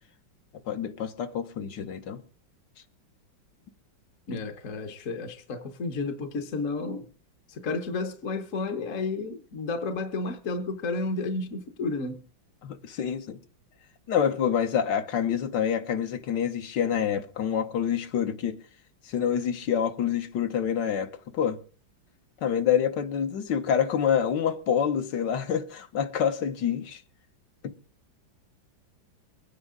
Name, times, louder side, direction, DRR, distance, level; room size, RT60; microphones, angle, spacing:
voice 1, 0.7-2.2 4.3-4.4 12.6-13.4 14.1-18.6 19.0-21.6 22.4-27.0 27.6-27.7, left 8 dB, 65° left, 1.6 m, -27 dB
voice 2, 4.3-7.1 7.5-12.2, left 3 dB, 50° left, 1.2 m, -32 dB
23.5 x 9.5 x 3.7 m
omnidirectional pair, 2.1 m